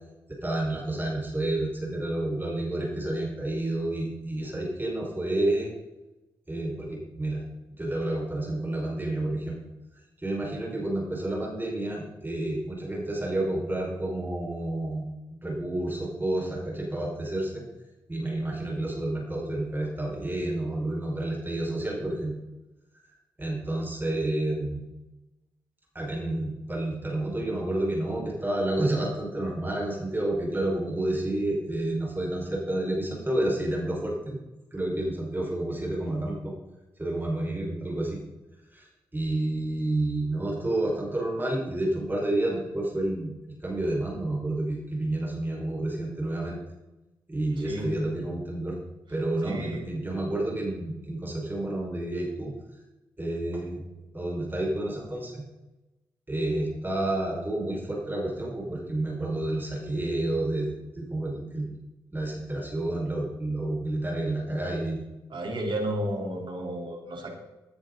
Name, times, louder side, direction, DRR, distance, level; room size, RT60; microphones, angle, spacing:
voice 1, 0.4-5.7 6.5-7.4 7.8-9.6 10.2-15.0 15.3-17.6 18.1-22.3 23.4-24.8 25.9-34.4 34.7-36.5 37.0-38.2 38.7-43.3 43.6-46.6 47.3-48.8 49.1-52.5 53.2-53.8 54.1-55.4 56.3-61.7 62.1-65.0, right 1 dB, 20° right, -2 dB, 5.1 m, -30 dB
voice 2, 47.6-47.9 49.4-49.8 65.3-67.3, right 1 dB, 55° right, 1 dB, 3.8 m, -32 dB
16.0 x 10.0 x 4.0 m, 1.0 s
hypercardioid pair, 40°, 10 cm